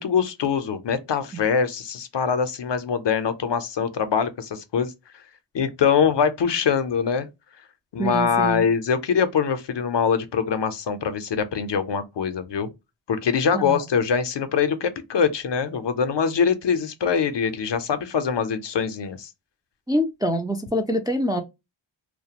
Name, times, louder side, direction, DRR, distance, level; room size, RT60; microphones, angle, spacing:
voice 1, 0.0-4.9 5.5-7.3 7.9-12.7 13.1-19.3, left 6 dB, 60° left, 0.5 m, -23 dB
voice 2, 8.0-8.7 13.5-13.8 19.9-21.4, equal, 10° right, 0.3 m, -25 dB
2.3 x 2.1 x 2.7 m
wide cardioid pair, 65°, 49 cm